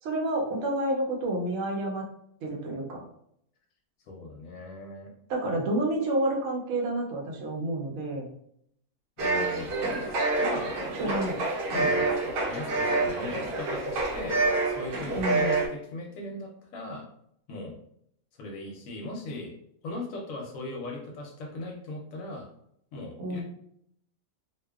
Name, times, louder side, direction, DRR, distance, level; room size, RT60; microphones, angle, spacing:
voice 1, 0.0-2.0 2.4-3.0 5.3-8.3 11.0-11.4 15.1-15.5 23.2-23.4, right 1 dB, 70° right, -1 dB, 0.9 m, -29 dB
voice 2, 4.1-5.1 9.2-9.8 10.3-10.8 11.0-11.2 11.7-17.0 17.5-17.8 18.3-19.5 19.8-22.5 22.9-23.4, left 2 dB, 70° left, 1 dB, 0.9 m, -39 dB
sound 1, 9.2-15.7, right 3 dB, 90° right, 1.2 m, -27 dB
2.7 x 2.1 x 2.3 m, 0.71 s
omnidirectional pair, 1.5 m